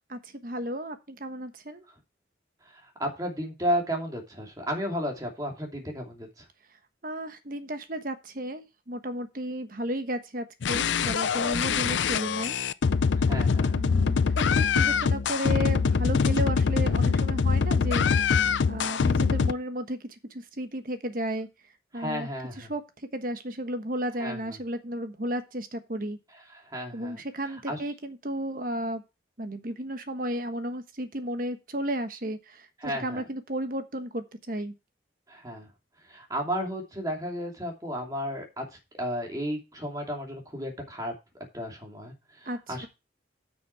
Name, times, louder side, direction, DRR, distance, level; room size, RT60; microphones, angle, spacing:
voice 1, 0.1-1.8 7.0-12.6 13.7-18.0 18.7-21.5 21.9-22.3 22.6-22.8 23.1-26.2 26.9-29.0 29.4-34.7 42.5-42.9, equal, 50° right, 9 dB, 1.3 m, -33 dB
voice 2, 3.0-6.5 13.3-13.9 21.9-22.7 24.2-24.6 26.5-27.2 27.5-27.8 32.8-33.2 35.3-35.7 36.1-38.6 38.9-41.1 41.5-42.9, equal, 20° right, 1 dB, 2.9 m, -33 dB
sound 1, 10.6-19.5, left 5 dB, 80° left, 0.5 m, -24 dB
9.2 x 6.4 x 4.7 m, 0.26 s
head